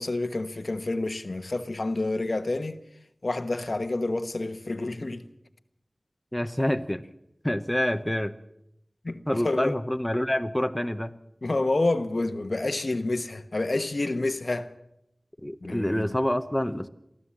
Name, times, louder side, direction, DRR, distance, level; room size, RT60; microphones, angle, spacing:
voice 1, 0.0-2.8 3.2-5.2 9.0-9.7 11.4-14.7 15.6-16.1, left 2 dB, 65° left, 1.1 m, -28 dB
voice 2, 6.3-7.1 7.4-8.3 9.3-11.1 15.4-16.9, left 1 dB, 10° left, 0.9 m, -27 dB
23.0 x 15.0 x 7.5 m
wide cardioid pair, 50°, 0 cm